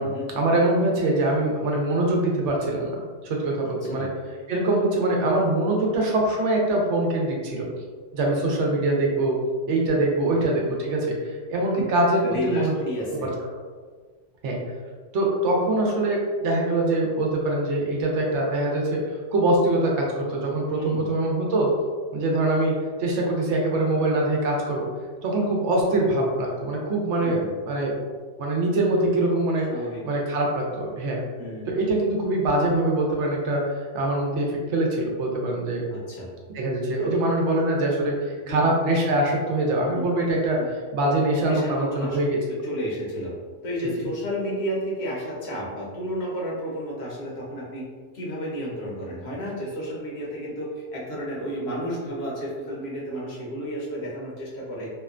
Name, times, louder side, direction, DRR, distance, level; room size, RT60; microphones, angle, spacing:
voice 1, 0.3-2.9 3.2-4.1 4.5-7.7 8.1-9.4 9.7-12.7 13.2-13.3 14.4-14.6 15.1-19.0 19.3-21.7 22.1-24.9 25.2-28.0 28.4-29.7 30.1-31.2 31.7-35.8 36.5-42.4, right 2 dB, 75° right, -1 dB, 0.9 m, -23 dB
voice 2, 10.2-10.5 12.2-13.3 20.8-21.1 27.2-27.5 29.7-30.0 31.4-31.7 35.9-36.3 37.0-37.1 38.4-38.8 39.9-40.0 40.6-40.7 41.4-42.2 42.5-43.3 43.6-47.8 48.1-54.9, equal, 65° left, -4 dB, 0.9 m, -32 dB
2.8 x 2.1 x 2.4 m, 1.5 s
omnidirectional pair, 1.2 m